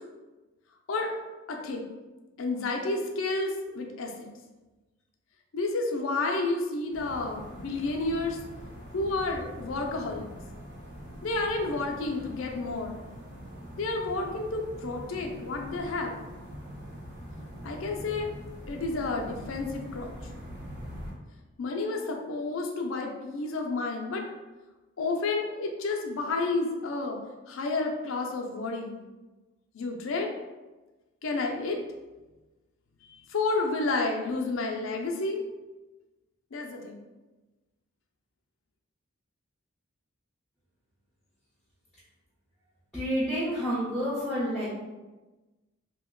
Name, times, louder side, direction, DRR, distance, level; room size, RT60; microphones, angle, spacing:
voice 1, 1.5-1.8 2.4-4.3 5.5-8.4 8.9-10.3 11.2-13.0 13.8-16.2 17.6-18.3 18.7-20.1 21.6-24.3 25.0-27.2 27.5-28.9 29.7-30.3 31.2-31.8 33.0-35.4 36.5-37.0, left 3 dB, 75° left, 2 dB, 0.5 m, -30 dB
sound 1, 6.9-21.1, equal, 50° right, 0.9 m, -43 dB
voice 2, 42.9-44.7, equal, ahead, -10 dB, 0.7 m, -29 dB
2.9 x 2.1 x 3.6 m, 1.2 s
head